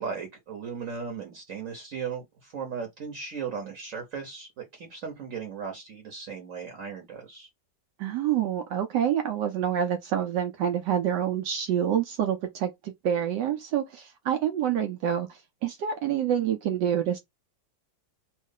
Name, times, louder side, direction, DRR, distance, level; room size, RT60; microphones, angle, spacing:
voice 1, 0.0-7.5, right 6 dB, 50° right, 1.1 m, -37 dB
voice 2, 8.0-17.2, right 9 dB, 75° right, 1.1 m, -27 dB
3.1 x 2.4 x 3.5 m
omnidirectional pair, 2.0 m